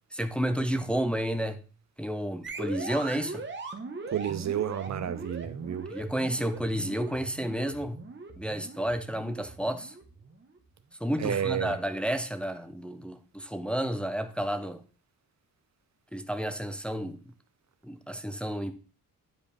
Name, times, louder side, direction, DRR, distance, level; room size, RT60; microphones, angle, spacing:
voice 1, 0.1-1.6 2.0-3.4 5.9-8.0 8.4-9.9 11.0-14.8 16.1-17.2 17.8-18.7, equal, 5° left, 0.6 m, -31 dB
sound 1, 2.4-10.5, right 3 dB, 30° right, 1.2 m, -40 dB
voice 2, 4.1-5.9 11.2-11.7, right 10 dB, 50° right, 0.6 m, -31 dB
9.8 x 4.8 x 3.4 m
cardioid pair, 125°, 35 cm